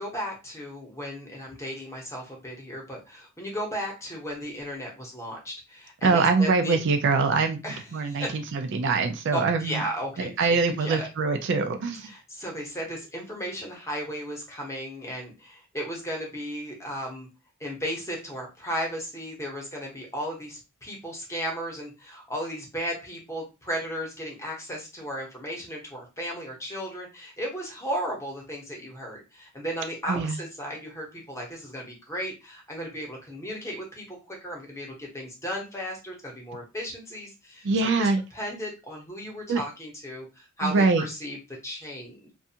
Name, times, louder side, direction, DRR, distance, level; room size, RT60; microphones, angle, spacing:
voice 1, 0.0-6.8 7.6-8.4 9.3-11.1 12.0-17.3 17.6-41.4 41.6-42.3, equal, 15° left, 0.9 m, -35 dB
voice 2, 6.0-7.6 7.9-9.8 10.2-12.1 30.1-30.4 37.6-38.2 39.5-39.6 40.6-41.0, right 4 dB, 55° right, 0.4 m, -23 dB
2.5 x 2.3 x 2.8 m
head